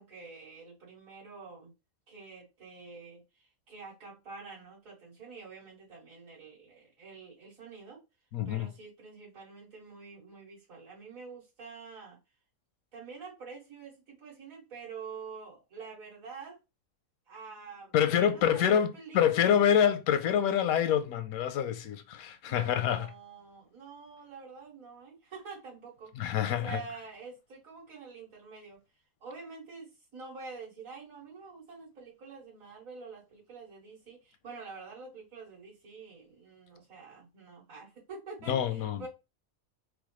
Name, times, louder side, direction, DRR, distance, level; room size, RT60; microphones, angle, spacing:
voice 1, 0.0-1.7 2.1-8.0 8.5-12.2 12.9-16.6 17.3-19.7 22.4-26.1 26.5-28.8 29.2-39.1, right 4 dB, 70° right, 2.4 m, -47 dB
voice 2, 8.3-8.7 17.9-23.1 26.2-26.8 38.5-39.0, left 9 dB, 85° left, 1.0 m, -26 dB
4.7 x 2.0 x 3.0 m
omnidirectional pair, 1.5 m